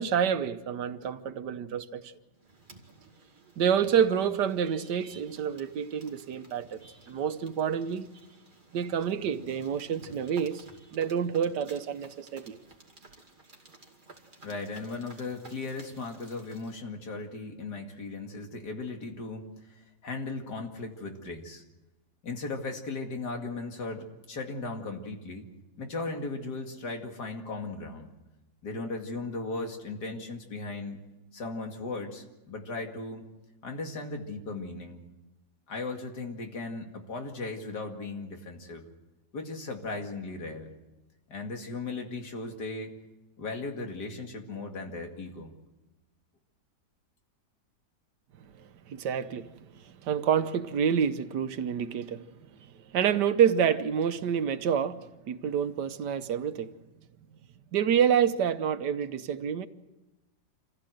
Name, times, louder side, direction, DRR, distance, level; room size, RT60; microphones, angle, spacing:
voice 1, 0.0-2.1 3.6-8.1 8.7-10.6 10.9-12.6 48.9-49.5 49.8-52.2 52.9-56.7 57.7-59.7, right 8 dB, 90° right, 1.6 m, -28 dB
sound 1, 2.4-16.8, right 2 dB, 30° right, 2.5 m, -55 dB
voice 2, 14.4-21.6 22.2-25.5 25.8-28.1 28.6-31.0 31.3-33.3 33.6-35.0 35.7-38.9 39.3-40.7 41.3-43.0 43.4-45.5, left 3 dB, 75° left, 2.8 m, -37 dB
27.0 x 15.5 x 7.9 m
omnidirectional pair, 1.8 m